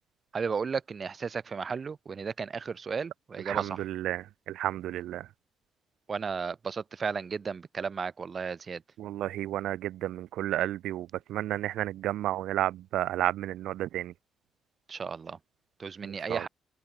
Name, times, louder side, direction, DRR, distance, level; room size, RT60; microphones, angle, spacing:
voice 1, 0.3-3.8 6.1-8.8 14.9-15.4 15.8-16.5, right 5 dB, 40° right, 4.8 m, -34 dB
voice 2, 3.5-5.2 9.0-14.1 16.0-16.4, right 13 dB, 85° right, 2.2 m, -32 dB
open air
cardioid pair, 90°, 0 cm